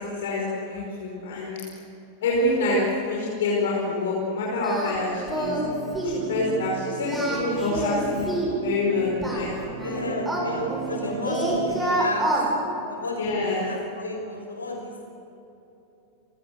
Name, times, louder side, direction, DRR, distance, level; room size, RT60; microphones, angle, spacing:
voice 1, 0.0-1.6 2.2-5.6 6.0-9.5 10.4-10.6 13.2-13.7, left 2 dB, 60° left, -3 dB, 5.2 m, -26 dB
Singing, 4.6-5.0 5.3-5.7 5.9-6.2 7.0-8.6 9.2-11.0 11.3-12.5, right 1 dB, 10° right, 7.8 m, -28 dB
sound 1, 5.3-11.8, right 8 dB, 70° right, 3.1 m, -35 dB
voice 2, 9.8-12.3 12.9-15.0, left 2 dB, 75° left, 3 dB, 5.4 m, -32 dB
29.5 x 19.0 x 8.1 m, 2.9 s
figure-of-eight pair, 90°, 0 cm